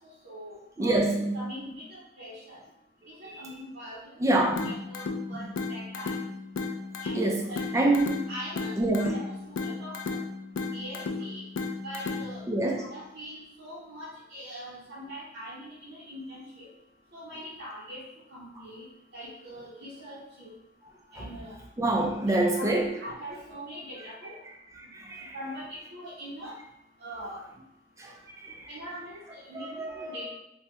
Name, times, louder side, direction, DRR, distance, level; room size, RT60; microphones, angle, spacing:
voice 1, 0.2-2.6 3.1-4.1 4.6-6.3 7.0-7.9 8.3-10.2 10.6-11.4 11.8-12.4 12.8-16.7 17.1-18.8 19.1-20.5 21.1-21.6 22.3-22.7 23.0-24.4 25.3-26.5 27.0-27.4 28.7-30.3, equal, 55° right, -7 dB, 0.7 m, -42 dB
voice 2, 0.8-1.3 3.2-3.4 4.2-4.8 7.1-7.5 7.7-8.2 8.8-9.1 12.5-12.8 21.2-21.3 21.8-22.9 24.8-25.3 28.0-28.1 28.4-28.8 29.5-30.3, right 2 dB, 15° right, 1 dB, 0.3 m, -26 dB
sound 1, 4.6-12.6, left 3 dB, 75° left, 0.3 m, -35 dB
2.8 x 2.2 x 3.2 m, 0.85 s
head